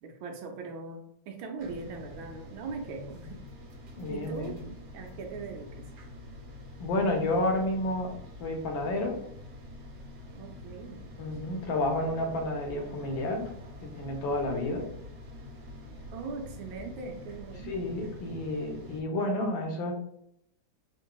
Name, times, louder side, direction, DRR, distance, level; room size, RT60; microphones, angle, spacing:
voice 1, 0.0-3.4 4.1-5.9 10.4-11.0 16.1-17.9, right 4 dB, 85° right, 3 dB, 1.4 m, -40 dB
sound 1, 1.6-19.0, left 1 dB, 65° right, 1.2 m, -46 dB
voice 2, 4.0-4.6 6.8-8.1 8.4-9.2 11.2-13.5 13.8-14.8 17.6-19.9, left 1 dB, 80° left, 2 dB, 1.5 m, -30 dB
3.8 x 2.6 x 2.2 m, 0.72 s
omnidirectional pair, 2.1 m